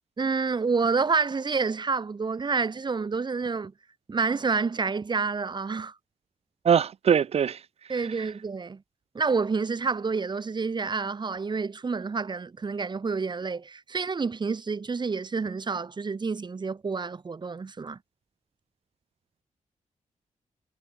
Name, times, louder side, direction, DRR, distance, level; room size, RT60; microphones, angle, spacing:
voice 1, 0.2-3.7 4.1-6.0 7.9-8.8 9.1-18.0, right 4 dB, 40° right, 3.6 m, -28 dB
voice 2, 6.6-7.6, right 8 dB, 55° right, 0.8 m, -22 dB
cardioid pair, 105°, 12 cm